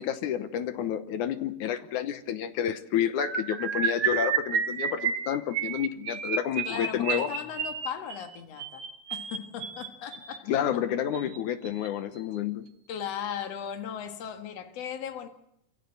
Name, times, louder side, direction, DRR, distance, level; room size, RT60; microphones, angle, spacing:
voice 1, 0.0-7.3 10.5-12.7, left 9 dB, 70° left, 2.3 m, -30 dB
sound 1, 3.2-10.4 11.1-11.4 11.6-11.9 12.2-12.4, right 7 dB, 55° right, 2.5 m, -31 dB
voice 2, 6.7-8.8 9.1-10.5 12.9-15.3, left 8 dB, 55° left, 2.5 m, -37 dB
25.5 x 16.5 x 7.9 m
omnidirectional pair, 3.9 m